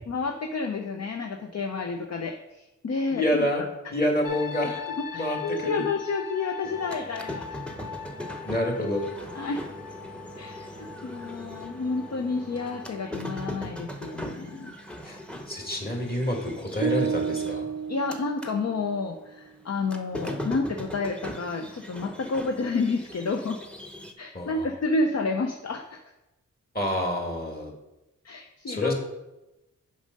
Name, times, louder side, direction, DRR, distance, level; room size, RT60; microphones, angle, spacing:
voice 1, 0.1-3.5 5.1-7.6 9.3-9.6 10.4-14.7 17.9-23.6 24.2-26.0 28.2-28.9, left 3 dB, 55° left, 5 dB, 0.7 m, -30 dB
voice 2, 3.1-3.6 3.9-4.8 5.1-5.4 5.6-5.8 8.5-9.1 15.0-15.2 15.5-17.7 24.3-24.7 26.7-27.7 28.7-28.9, left 1 dB, 30° left, 1 dB, 2.1 m, -27 dB
sound 1, 4.2-16.0 16.2-16.7, left 8 dB, 80° left, 1.3 m, -41 dB
sound 2, 6.6-18.6 18.9-24.1, equal, 5° left, 0.9 m, -40 dB
sound 3, 16.8-19.0, right 6 dB, 50° right, 0.4 m, -30 dB
7.1 x 5.4 x 5.2 m, 0.97 s
cardioid pair, 65°, 32 cm